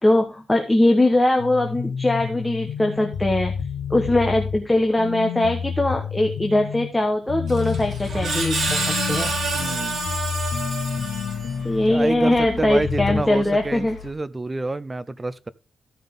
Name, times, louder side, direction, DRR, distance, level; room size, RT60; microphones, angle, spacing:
voice 1, 0.0-3.5 3.9-9.3 11.6-14.0, left 1 dB, 10° left, 1.2 m, -21 dB
sound 1, 1.4-13.2, left 7 dB, 85° left, 0.7 m, -30 dB
Screech, 7.5-11.8, right 3 dB, 60° right, 3.5 m, -28 dB
sound 2, 7.8-14.1, left 12 dB, 70° left, 1.5 m, -43 dB
voice 2, 9.5-10.0 11.9-15.5, right 2 dB, 20° right, 0.6 m, -28 dB
15.0 x 5.5 x 3.7 m
wide cardioid pair, 140°, 0 cm